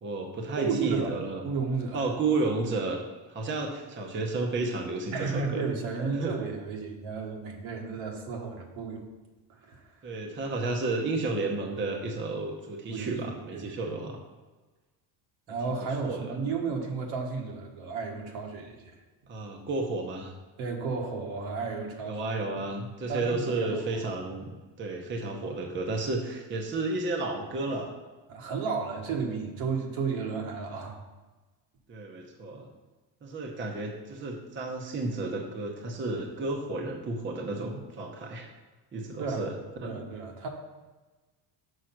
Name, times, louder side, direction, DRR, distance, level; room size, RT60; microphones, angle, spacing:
voice 1, 0.0-1.4 1.9-3.0 3.3-5.6 6.1-6.3 10.0-14.2 16.0-16.3 19.3-20.3 22.0-27.9 31.9-32.7 33.2-38.5 38.9-39.5 39.8-40.0, right 3 dB, 25° right, 2 dB, 0.8 m, -32 dB
voice 2, 0.6-1.1 1.4-2.1 5.1-9.0 9.6-9.9 12.9-13.8 15.5-18.9 20.6-22.2 22.6-22.7 23.1-24.1 28.3-31.0 39.2-39.5 39.8-40.5, right 5 dB, 70° right, 1 dB, 1.6 m, -33 dB
6.4 x 5.5 x 5.9 m, 1.2 s
cardioid pair, 150°, 48 cm